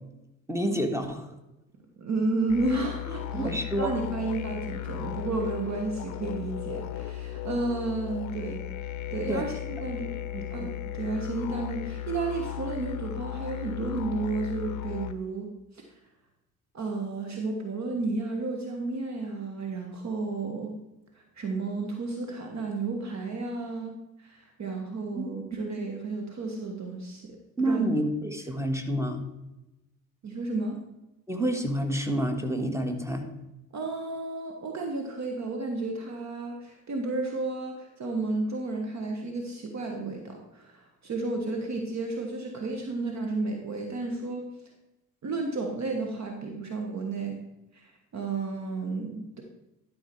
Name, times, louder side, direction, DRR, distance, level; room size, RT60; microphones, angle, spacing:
voice 1, 0.5-1.3 3.3-3.9 9.3-9.4 10.3-10.4 25.1-25.6 27.6-29.2 31.3-33.3, right 1 dB, 5° right, 5 dB, 1.5 m, -28 dB
voice 2, 2.0-8.6 9.1-10.1 10.5-15.5 15.7-16.0 16.7-20.7 21.4-23.9 24.2-27.8 30.2-30.8 33.7-44.5 45.2-47.4 47.7-49.4, right 3 dB, 40° right, 2 dB, 1.5 m, -32 dB
sound 1, 2.5-15.1, left 12 dB, 40° left, 0.7 m, -36 dB
12.0 x 4.9 x 4.7 m, 0.94 s
figure-of-eight pair, 55°, 44 cm